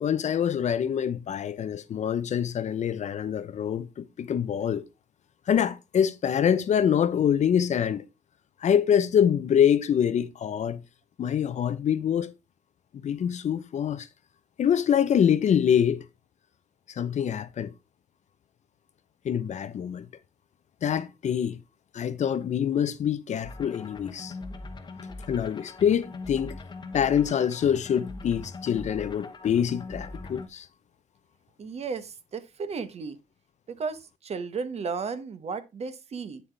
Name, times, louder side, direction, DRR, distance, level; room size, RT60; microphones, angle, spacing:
voice 1, 0.0-4.8 5.5-8.0 8.6-10.8 11.2-12.3 13.0-14.1 14.6-16.0 17.0-17.7 19.2-20.1 20.8-21.6 21.9-24.3 25.3-26.6 26.9-30.7, left 8 dB, 45° left, 0.7 m, -25 dB
sound 1, 23.4-30.5, left 3 dB, 25° left, 1.1 m, -41 dB
voice 2, 31.6-33.2 33.7-36.4, right 5 dB, 40° right, 1.2 m, -34 dB
8.4 x 7.4 x 3.4 m
cardioid pair, 110°, 17 cm